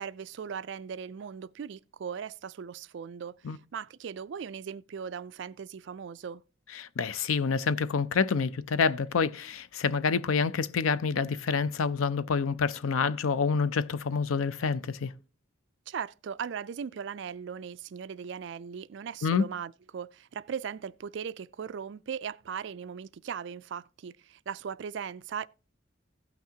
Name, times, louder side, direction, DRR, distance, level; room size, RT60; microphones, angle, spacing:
voice 1, 0.0-6.4 15.9-25.5, right 7 dB, 60° right, 0.3 m, -38 dB
voice 2, 6.8-15.1 19.2-19.5, left 5 dB, 90° left, 0.5 m, -27 dB
16.5 x 5.9 x 2.8 m
head